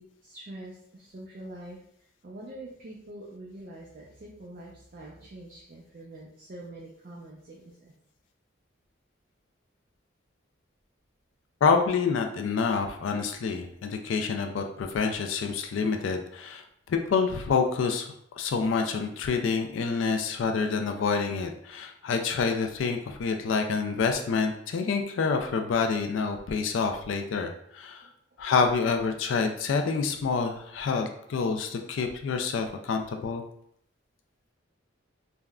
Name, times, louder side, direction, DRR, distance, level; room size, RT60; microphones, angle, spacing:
voice 1, 0.0-1.8 2.2-7.9 28.0-28.1, right 1 dB, 45° right, -4 dB, 0.4 m, -45 dB
voice 2, 11.6-16.6 16.9-28.1 28.4-33.4, left 5 dB, 75° left, 5 dB, 0.3 m, -27 dB
3.5 x 2.1 x 2.3 m, 0.69 s
head